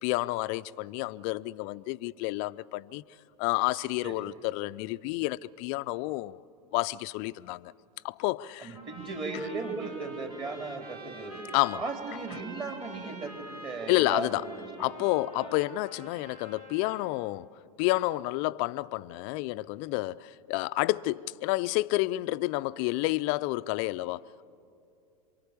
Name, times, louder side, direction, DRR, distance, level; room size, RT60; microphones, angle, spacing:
voice 1, 0.0-3.0 3.4-6.4 6.7-7.7 8.0-8.8 9.3-9.4 11.5-11.8 13.9-14.5 14.8-17.5 17.8-24.5, left 19 dB, 50° left, 0.6 m, -30 dB
voice 2, 8.6-11.4 11.7-14.9, right 3 dB, 25° right, 4.0 m, -37 dB
sound 1, 8.7-17.1, right 1 dB, 80° right, 5.1 m, -47 dB
27.5 x 24.0 x 8.4 m
hypercardioid pair, 95°, 19 cm